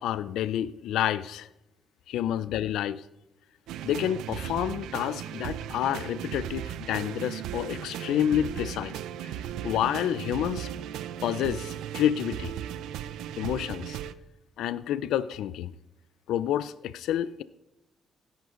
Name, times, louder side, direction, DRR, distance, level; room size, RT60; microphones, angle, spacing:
voice 1, 0.0-1.5 2.1-3.0 3.8-8.9 9.3-10.7 11.2-12.5 13.4-14.0 14.6-15.7 16.3-17.4, left 11 dB, 85° left, 16 dB, 0.5 m, -29 dB
sound 1, 3.7-14.1, right 10 dB, 90° right, 0.6 m, -36 dB
16.5 x 11.0 x 3.8 m, 0.92 s
cardioid pair, 90°, 0 cm